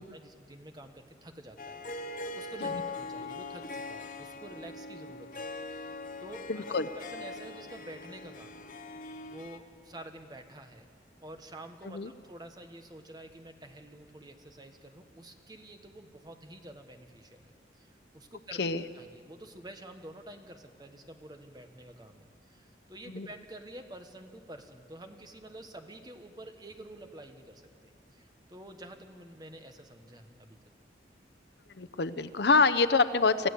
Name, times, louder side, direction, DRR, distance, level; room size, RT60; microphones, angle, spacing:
voice 1, 0.0-5.4 5.7-8.6 9.3-10.9 11.2-18.7 18.9-30.6, right 1 dB, 20° right, 6 dB, 1.3 m, -49 dB
Harp, 1.6-9.6, left 3 dB, 45° left, 1.0 m, -41 dB
voice 2, 6.5-6.9 11.8-12.1 18.6-18.8 23.1-23.3 31.8-33.5, left 4 dB, 65° left, 12 dB, 0.7 m, -26 dB
26.5 x 15.0 x 8.3 m, 2.3 s
head